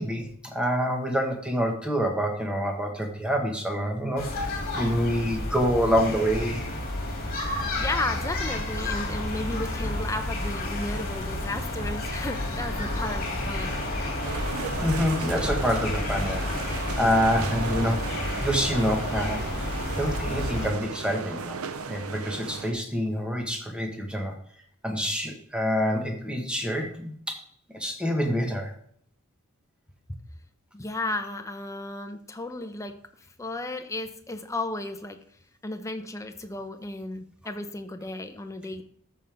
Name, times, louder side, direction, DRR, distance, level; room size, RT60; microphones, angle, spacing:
voice 1, 0.0-6.6 14.8-21.6 21.9-24.3 24.8-27.4 27.7-28.7, equal, 5° right, 2 dB, 1.3 m, -27 dB
sound 1, 4.2-20.7, left 1 dB, 45° left, 2.6 m, -30 dB
voice 2, 7.8-13.8 30.1-30.2 30.7-32.9 33.4-35.2 35.6-38.8, left 2 dB, 15° left, 6 dB, 0.7 m, -34 dB
sound 2, 14.2-22.7, right 5 dB, 70° right, 0.7 m, -36 dB
13.5 x 5.4 x 3.5 m, 0.64 s
head